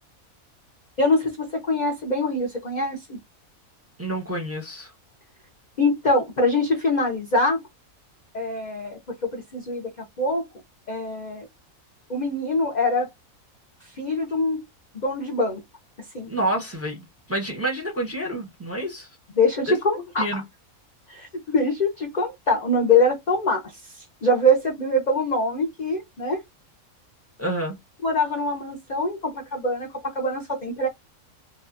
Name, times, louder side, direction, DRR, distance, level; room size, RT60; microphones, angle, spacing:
voice 1, 1.0-3.2 5.8-7.6 8.3-10.5 10.9-11.5 12.1-13.1 14.0-14.6 15.0-15.6 16.1-16.3 19.4-20.4 21.1-26.4 28.0-30.9, left 2 dB, 50° left, 0.5 m, -24 dB
voice 2, 4.0-4.9 16.3-19.1 19.7-19.8 20.2-20.4 27.4-27.8, right 1 dB, 15° right, 0.7 m, -28 dB
2.7 x 2.2 x 2.5 m
omnidirectional pair, 1.5 m